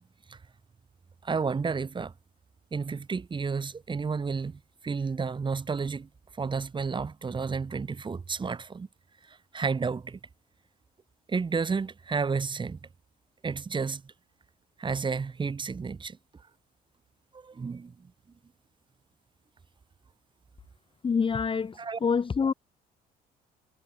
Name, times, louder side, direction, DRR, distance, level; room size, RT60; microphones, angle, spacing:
voice 1, 1.2-2.1 2.7-6.1 6.4-8.9 9.3-10.2 11.3-12.8 13.4-14.1 14.8-16.2 17.3-18.1 21.7-22.0, right 5 dB, 30° right, 6.3 m, -31 dB
voice 2, 21.0-21.7 22.0-22.5, left 5 dB, 30° left, 2.1 m, -26 dB
cardioid pair, 110°, 17 cm